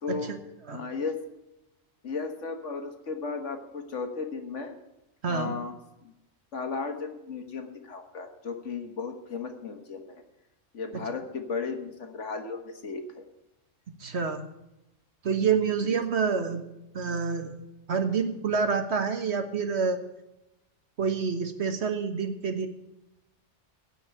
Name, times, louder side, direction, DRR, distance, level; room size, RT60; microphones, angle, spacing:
voice 1, 0.0-0.3 0.7-1.2 2.0-4.7 5.3-5.7 6.0-6.1 6.5-10.2 10.7-13.3 15.8-16.0, left 4 dB, 80° left, 5 dB, 1.8 m, -35 dB
voice 2, 14.0-14.4 15.2-16.6 16.9-17.5 17.9-20.0 21.0-22.7, right 5 dB, 65° right, 7 dB, 1.5 m, -27 dB
16.0 x 5.6 x 8.8 m, 0.92 s
omnidirectional pair, 1.2 m